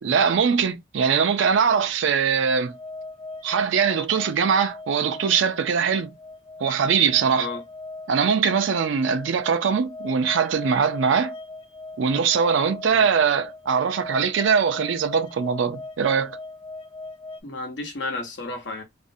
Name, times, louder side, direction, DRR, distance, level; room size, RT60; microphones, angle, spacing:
voice 1, 0.0-2.7 3.4-6.1 6.6-7.5 8.1-11.3 12.0-16.4, right 6 dB, 90° right, 0.4 m, -22 dB
sound 1, 2.7-17.4, left 2 dB, 30° left, 0.3 m, -39 dB
voice 2, 17.4-18.8, left 2 dB, 65° left, 0.8 m, -32 dB
2.5 x 2.0 x 2.6 m
head